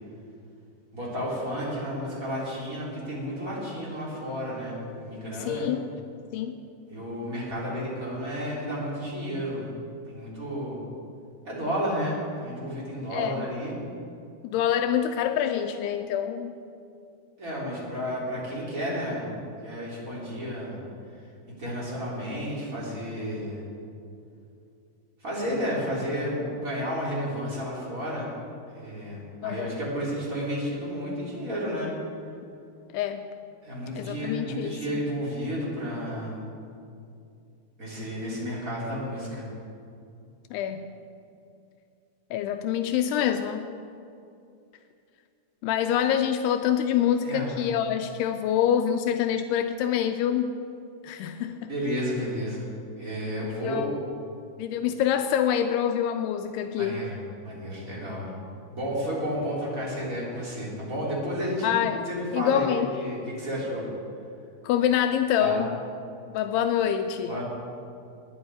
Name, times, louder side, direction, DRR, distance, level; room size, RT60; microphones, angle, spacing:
voice 1, 0.9-5.7 6.9-9.7 10.1-10.8 11.4-13.7 17.4-20.8 21.5-23.6 25.2-28.3 28.7-31.9 33.6-36.5 37.8-39.5 47.2-47.5 51.7-52.7 53.0-53.8 56.8-57.2 57.4-58.3 58.7-62.7 62.9-63.9 65.4-65.6 67.3-67.4, equal, 20° right, -6 dB, 3.0 m, -32 dB
voice 2, 5.5-5.9 6.3-6.6 13.1-13.5 14.5-16.5 29.4-29.8 32.9-33.2 34.0-35.0 40.5-40.9 42.3-43.7 45.6-50.6 51.0-51.7 53.4-53.9 54.6-57.0 61.6-62.0 62.3-62.9 64.6-65.8 66.3-67.4, left 9 dB, 90° left, 7 dB, 2.3 m, -26 dB
18.5 x 10.0 x 4.8 m, 2.5 s
omnidirectional pair, 5.2 m